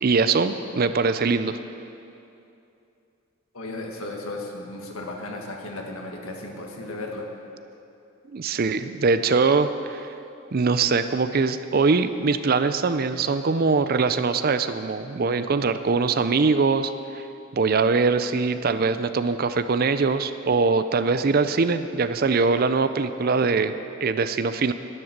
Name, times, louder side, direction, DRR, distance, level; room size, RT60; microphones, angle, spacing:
voice 1, 0.0-1.6 8.3-10.1 10.5-17.2 17.5-24.7, right 4 dB, 45° right, 11 dB, 0.5 m, -22 dB
voice 2, 3.5-7.2, left 2 dB, 80° left, 1 dB, 1.7 m, -35 dB
11.0 x 11.0 x 6.6 m, 2.7 s
head